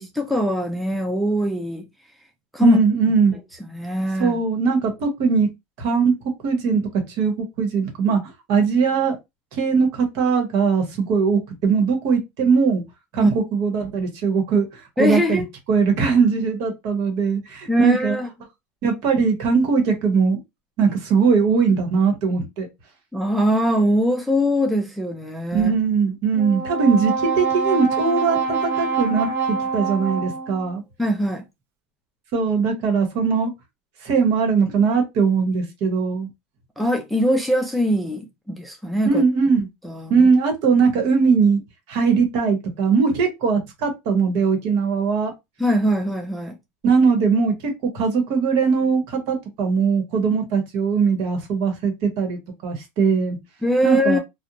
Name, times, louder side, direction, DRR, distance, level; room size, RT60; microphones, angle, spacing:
voice 1, 0.2-1.9 2.5-2.8 3.7-4.4 13.2-13.3 15.0-15.5 17.7-18.3 23.1-25.7 31.0-31.4 36.8-39.2 39.8-40.3 45.6-46.6 53.6-54.2, equal, ahead, 0.4 m, -21 dB
voice 2, 2.6-3.4 4.2-5.5 5.8-6.1 6.4-9.2 9.5-12.8 13.1-18.2 18.8-20.4 20.8-22.7 25.5-30.8 32.3-33.5 34.0-36.3 39.1-39.7 40.1-41.6 41.9-45.3 46.8-53.4 53.8-54.2, right 5 dB, 55° right, 1.1 m, -20 dB
Brass instrument, 26.3-30.7, right 4 dB, 35° right, 0.7 m, -25 dB
2.4 x 2.1 x 2.9 m
supercardioid pair, 135°, 7 cm